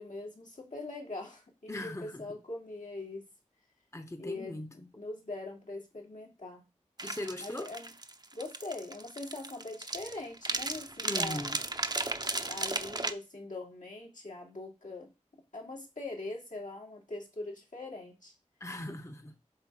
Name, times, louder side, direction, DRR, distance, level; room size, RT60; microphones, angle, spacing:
voice 1, 0.0-3.2 4.2-6.6 7.4-7.9 8.3-11.5 12.4-15.1 15.5-18.3, left 2 dB, 80° left, 2.9 m, -42 dB
voice 2, 1.7-2.2 3.9-4.9 7.0-7.7 11.0-11.6 18.6-19.3, left 1 dB, 20° left, 1.0 m, -39 dB
sound 1, 7.0-13.1, right 2 dB, 35° right, 0.8 m, -35 dB
7.9 x 3.7 x 6.3 m
wide cardioid pair, 45°, 13 cm